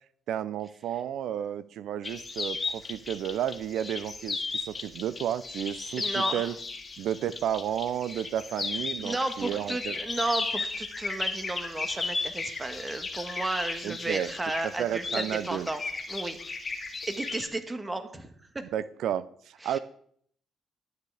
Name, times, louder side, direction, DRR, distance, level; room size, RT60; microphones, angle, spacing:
voice 1, 0.3-6.6 7.0-10.0 13.8-14.3 14.6-15.7 18.7-19.8, right 10 dB, 80° right, 16 dB, 0.5 m, -32 dB
sound 1, 2.0-17.5, left 3 dB, 30° left, 2.0 m, -35 dB
voice 2, 6.0-6.5 9.0-15.8 16.1-16.4 17.0-18.6 19.6-19.8, right 2 dB, 20° right, 8 dB, 1.5 m, -33 dB
11.5 x 9.4 x 4.9 m, 0.65 s
cardioid pair, 90°, 0 cm